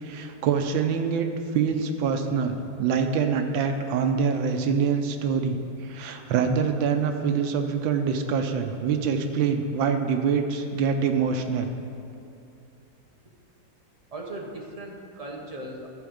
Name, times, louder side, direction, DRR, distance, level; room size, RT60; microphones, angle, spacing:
voice 1, 0.0-1.3 1.5-11.7, right 6 dB, 90° right, 6 dB, 1.5 m, -25 dB
voice 2, 14.1-15.9, right 1 dB, 25° right, -1 dB, 0.8 m, -38 dB
13.0 x 4.7 x 6.3 m, 2.7 s
omnidirectional pair, 2.1 m